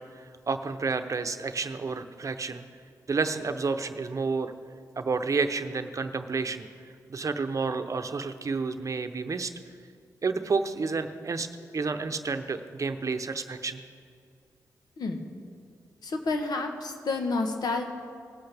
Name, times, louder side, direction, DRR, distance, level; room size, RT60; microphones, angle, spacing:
voice 1, 0.2-2.6 3.1-4.5 5.0-6.7 7.1-9.5 10.2-11.5 11.7-13.8, right 4 dB, 50° right, 9 dB, 0.8 m, -30 dB
voice 2, 16.0-17.8, left 3 dB, 75° left, 5 dB, 1.2 m, -29 dB
19.5 x 8.0 x 3.5 m, 2.2 s
cardioid pair, 50°, 7 cm